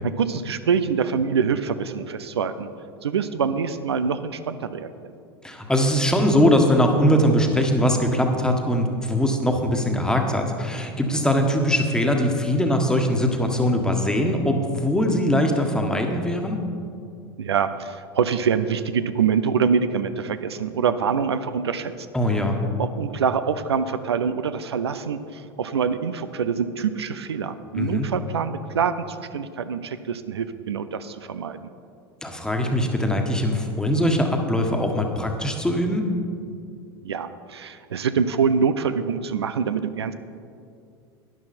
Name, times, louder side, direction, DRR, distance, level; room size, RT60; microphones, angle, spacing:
voice 1, 0.2-2.7 3.0-4.9 17.4-22.1 22.8-31.7 37.0-40.1, right 6 dB, 80° right, 11 dB, 0.5 m, -25 dB
voice 2, 5.4-16.6 22.1-22.6 27.7-28.1 32.2-36.1, equal, 5° left, 3 dB, 1.4 m, -21 dB
12.0 x 10.5 x 4.3 m, 2.4 s
figure-of-eight pair, 80°, 13 cm